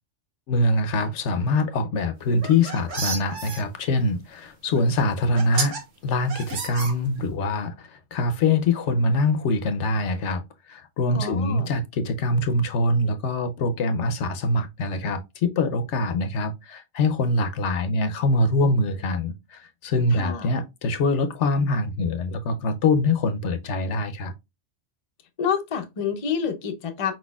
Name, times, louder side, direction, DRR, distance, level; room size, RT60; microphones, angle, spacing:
voice 1, 0.5-24.3, left 2 dB, 70° left, 1.0 m, -24 dB
sound 1, 2.3-3.6 4.8-4.9 5.4-5.8 6.3-7.4, right 5 dB, 85° right, 1.4 m, -31 dB
voice 2, 11.1-11.7 20.1-20.5 25.4-27.1, left 7 dB, 40° left, 0.5 m, -28 dB
4.5 x 4.2 x 2.3 m
omnidirectional pair, 1.3 m